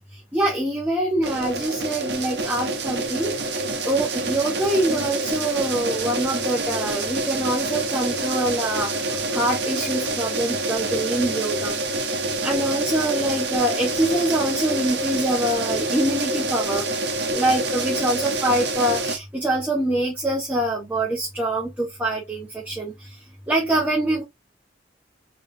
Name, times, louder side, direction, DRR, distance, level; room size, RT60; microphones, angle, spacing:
voice 1, 0.3-3.3 3.9-11.7 12.4-16.8 17.3-22.9 23.5-24.2, right 1 dB, 10° right, 0.8 m, -24 dB
sound 1, 1.2-19.2, right 2 dB, 65° right, 0.8 m, -27 dB
3.5 x 3.1 x 2.6 m
head